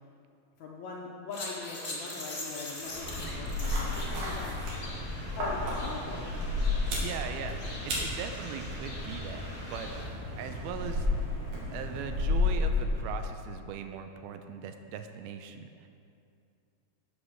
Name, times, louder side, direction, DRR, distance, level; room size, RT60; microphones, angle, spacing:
voice 1, 0.6-4.5 5.3-6.4, left 4 dB, 80° left, -3 dB, 1.6 m, -41 dB
sound 1, 1.3-10.0, left 1 dB, 35° left, 0.8 m, -43 dB
sound 2, 2.8-13.2, left 2 dB, 65° right, 3.8 m, -32 dB
voice 2, 7.0-9.9 10.4-11.1 11.7-15.9, right 7 dB, 85° right, 7 dB, 2.5 m, -40 dB
9.6 x 8.2 x 6.2 m, 2.5 s
omnidirectional pair, 4.5 m